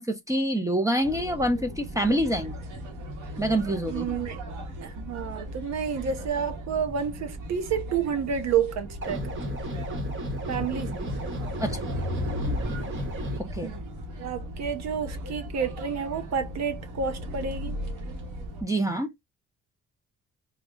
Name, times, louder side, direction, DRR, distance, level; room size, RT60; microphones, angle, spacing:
voice 1, 0.0-2.5 3.4-4.1 11.6-11.8 13.4-13.7 18.6-19.1, right 1 dB, 10° right, 0.7 m, -26 dB
sound 1, 1.0-18.6, equal, 90° right, 1.2 m, -37 dB
voice 2, 3.9-4.4 4.8-9.5 10.5-11.1 13.6-13.8 14.2-17.8, right 7 dB, 60° right, 0.7 m, -30 dB
sound 2, 9.0-13.4, equal, 40° right, 1.1 m, -33 dB
3.6 x 2.2 x 3.7 m
cardioid pair, 90°, 30 cm